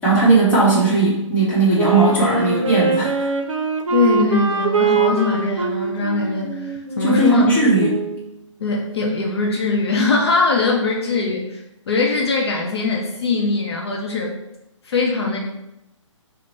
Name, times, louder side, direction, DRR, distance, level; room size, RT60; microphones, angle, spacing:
voice 1, 0.0-3.3 7.0-8.0, right 3 dB, 10° left, -9 dB, 1.0 m, -17 dB
Wind instrument woodwind instrument, 1.8-8.3, right 5 dB, 80° right, 0.6 m, -23 dB
voice 2, 3.9-7.6 8.6-14.3 14.8-15.4, left 4 dB, 55° left, -1 dB, 0.6 m, -21 dB
3.0 x 2.1 x 4.2 m, 0.89 s
figure-of-eight pair, 145°, 17 cm